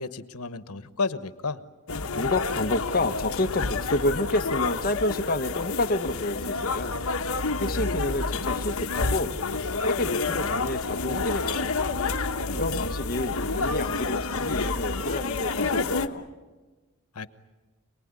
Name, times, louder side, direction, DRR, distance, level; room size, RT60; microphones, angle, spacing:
voice 1, 0.0-1.6 12.4-12.9 17.1-17.3, left 4 dB, 90° left, 13 dB, 1.1 m, -33 dB
sound 1, 1.9-16.1, left 4 dB, 70° left, 1.2 m, -29 dB
voice 2, 2.2-7.0 7.6-9.4 9.8-11.8 12.5-16.3, left 1 dB, 40° left, 6 dB, 1.2 m, -29 dB
27.5 x 20.0 x 9.7 m, 1.3 s
head